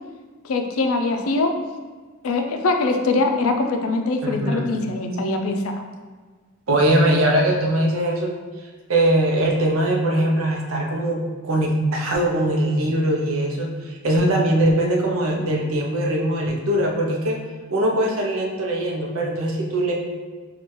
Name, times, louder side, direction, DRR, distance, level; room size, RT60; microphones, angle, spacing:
voice 1, 0.4-1.5 2.2-5.7, left 3 dB, 80° left, 4 dB, 0.4 m, -22 dB
voice 2, 4.2-4.8 6.7-8.3 8.9-17.4 17.7-19.9, right 1 dB, 70° right, 0 dB, 0.6 m, -21 dB
4.4 x 2.4 x 3.0 m, 1.4 s
head